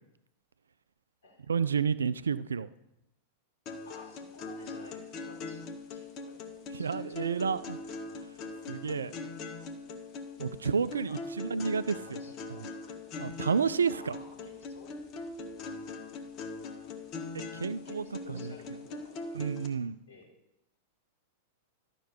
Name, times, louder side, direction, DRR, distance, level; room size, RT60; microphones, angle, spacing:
voice 1, 1.5-2.7 6.7-7.8 8.7-9.2 10.4-12.2 12.6-12.7 13.2-14.2 17.5-18.5 19.3-20.0, right 6 dB, 70° right, 16 dB, 0.3 m, -30 dB
sound 1, 3.7-19.7, left 3 dB, 35° left, 1.1 m, -41 dB
voice 2, 3.9-5.6 5.9-7.5 8.4-8.6 11.1-11.2 12.0-13.0 13.9-15.0 15.7-15.8 17.8-19.5 20.1-20.3, left 3 dB, 60° left, -3 dB, 3.5 m, -54 dB
12.0 x 5.9 x 5.4 m, 0.87 s
figure-of-eight pair, 90°, 0 cm